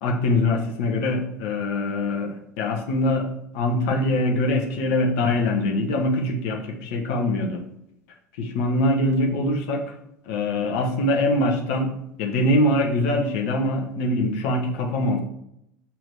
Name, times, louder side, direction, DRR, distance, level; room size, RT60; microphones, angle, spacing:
voice 1, 0.0-7.6 8.4-9.9 10.3-11.9 12.2-15.2, left 1 dB, 55° left, 2 dB, 0.9 m, -23 dB
6.9 x 3.0 x 4.7 m, 0.79 s
figure-of-eight pair, 70°, 9 cm